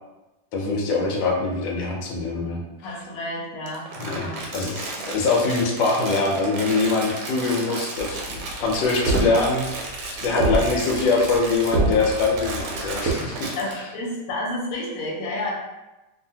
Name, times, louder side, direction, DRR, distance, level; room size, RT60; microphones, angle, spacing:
voice 1, 0.5-2.6 4.0-9.9 10.2-13.4, left 3 dB, 85° left, -1 dB, 1.3 m, -23 dB
voice 2, 2.8-4.4 13.6-15.5, left 1 dB, 60° left, -3 dB, 1.1 m, -30 dB
Crumpling crinkling, 3.6-13.7, right 2 dB, 85° right, 1.3 m, -34 dB
sound 1, 8.0-13.1, right 2 dB, 65° right, 0.8 m, -27 dB
2.7 x 2.6 x 2.6 m, 1.0 s
omnidirectional pair, 2.0 m